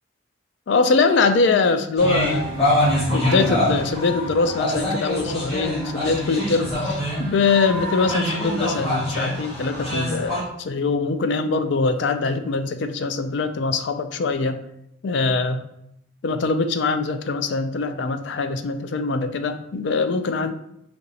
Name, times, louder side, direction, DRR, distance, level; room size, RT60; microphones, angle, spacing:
voice 1, 0.7-2.5 3.1-14.6 15.0-15.6 16.2-20.5, left 4 dB, 60° left, 9 dB, 0.4 m, -23 dB
sound 1, 2.0-10.4, left 1 dB, 30° left, 1.6 m, -25 dB
5.0 x 2.9 x 2.8 m, 0.78 s
head